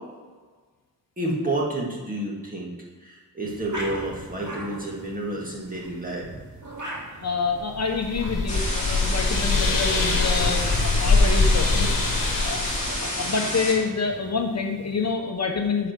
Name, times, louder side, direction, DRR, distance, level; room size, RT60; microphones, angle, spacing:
voice 1, 1.2-2.7 3.0-6.2, right 1 dB, 25° right, -3 dB, 1.8 m, -29 dB
sound 1, 3.4-15.1, right 1 dB, 55° right, 2.3 m, -41 dB
voice 2, 7.2-11.9 12.4-12.6 13.0-15.9, left 4 dB, 50° left, 3 dB, 0.8 m, -27 dB
sound 2, 7.7-13.1, left 3 dB, 65° left, 1.3 m, -23 dB
sound 3, 8.5-13.7, left 1 dB, 20° left, 2.5 m, -29 dB
9.7 x 5.0 x 5.9 m, 1.4 s
wide cardioid pair, 150°, 35 cm